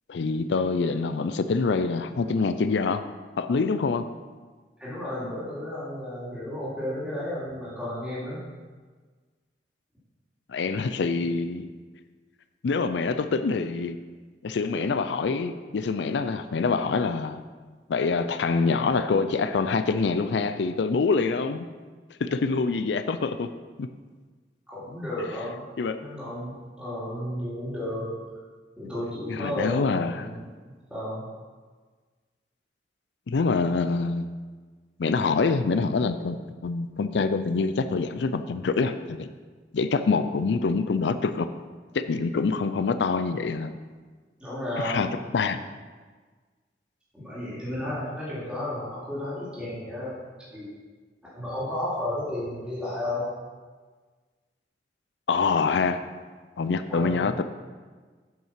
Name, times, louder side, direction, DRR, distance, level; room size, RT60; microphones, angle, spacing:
voice 1, 0.1-3.0 3.4-4.1 10.5-11.7 12.6-14.0 14.4-17.4 17.9-21.7 22.2-23.5 23.8-23.9 25.8-26.0 29.3-30.3 33.3-34.3 35.0-39.3 39.7-41.5 41.9-43.8 44.8-45.1 45.3-45.6 55.3-56.0 56.6-57.4, left 4 dB, 85° left, 10 dB, 0.4 m, -25 dB
voice 2, 4.8-8.4 24.7-25.6 26.0-28.2 28.8-30.4 30.9-31.2 44.4-45.1 47.1-50.2 50.5-50.7 51.3-53.3 56.9-57.4, left 1 dB, 5° right, -10 dB, 2.6 m, -33 dB
7.6 x 5.6 x 5.8 m, 1.4 s
head